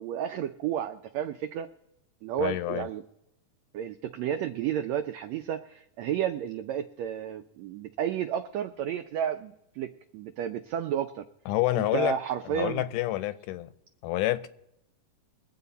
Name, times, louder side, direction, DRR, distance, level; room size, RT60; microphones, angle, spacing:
voice 1, 0.0-1.7 2.2-3.0 3.7-11.2 11.7-12.8, right 9 dB, 85° right, 1.5 m, -32 dB
voice 2, 2.4-2.9 11.5-12.2 12.6-13.7 14.0-14.5, left 15 dB, 80° left, 2.2 m, -28 dB
23.0 x 8.2 x 4.1 m
omnidirectional pair, 3.8 m